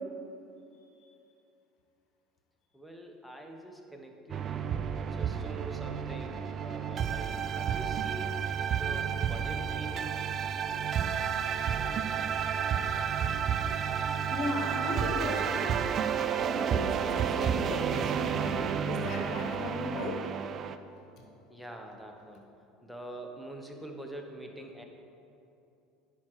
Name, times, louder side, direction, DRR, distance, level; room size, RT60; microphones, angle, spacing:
voice 1, 2.7-10.2 21.5-22.4 22.8-24.8, right 1 dB, ahead, 2 dB, 1.0 m, -45 dB
sound 1, 4.3-20.8, right 8 dB, 45° right, 0.4 m, -31 dB
voice 2, 14.3-15.8 16.4-20.2, left 2 dB, 55° left, 2 dB, 1.3 m, -36 dB
10.0 x 4.6 x 4.7 m, 2.7 s
hypercardioid pair, 75°, 0 cm